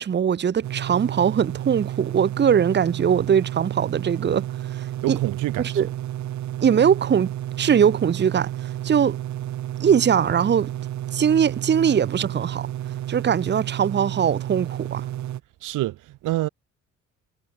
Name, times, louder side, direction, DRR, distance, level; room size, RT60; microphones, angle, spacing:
voice 1, 0.0-5.2 5.8-5.9 6.6-7.3 7.6-9.2 9.8-10.7 11.1-12.7 13.1-15.0, right 8 dB, 35° right, 0.9 m, -21 dB
sound 1, 0.6-15.4, right 12 dB, 70° right, 1.7 m, -31 dB
voice 2, 5.0-5.9 15.6-16.5, right 17 dB, 85° right, 1.2 m, -27 dB
cardioid pair, 90°, 30 cm